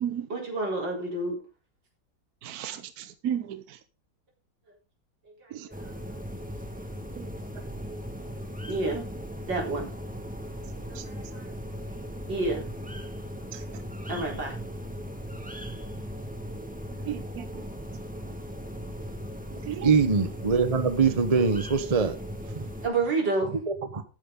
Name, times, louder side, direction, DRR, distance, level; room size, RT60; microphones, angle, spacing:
voice 1, 0.3-1.4 5.4-5.8 7.6-7.7 8.7-9.0 9.4-9.9 11.0-11.5 11.9-12.6 14.1-14.5 22.8-23.6, right 3 dB, 85° right, -1 dB, 4.9 m, -29 dB
voice 2, 2.4-3.8 5.5-5.7 7.2-7.3 10.9-11.0 13.5-13.6 17.1-17.6 19.6-19.9, right 10 dB, 65° right, 10 dB, 1.2 m, -34 dB
sound 1, 5.7-22.9, equal, 5° right, 1.5 m, -38 dB
voice 3, 19.8-22.2 23.7-24.0, right 5 dB, 25° right, 10 dB, 1.0 m, -23 dB
13.5 x 9.4 x 3.9 m, 0.32 s
omnidirectional pair, 1.9 m